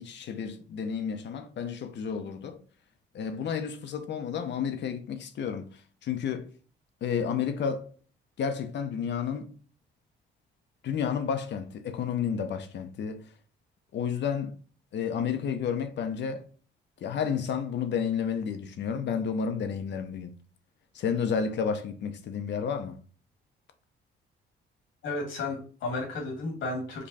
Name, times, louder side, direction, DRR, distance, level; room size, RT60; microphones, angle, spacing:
voice 1, 0.0-2.6 3.1-6.5 7.0-7.9 8.4-9.5 10.8-13.3 13.9-14.6 14.9-16.5 17.0-20.3 20.9-23.0, left 7 dB, 65° left, 0.8 m, -31 dB
voice 2, 25.0-27.1, left 2 dB, 85° left, 1.9 m, -33 dB
5.3 x 2.3 x 4.1 m
cardioid pair, 90°, 20 cm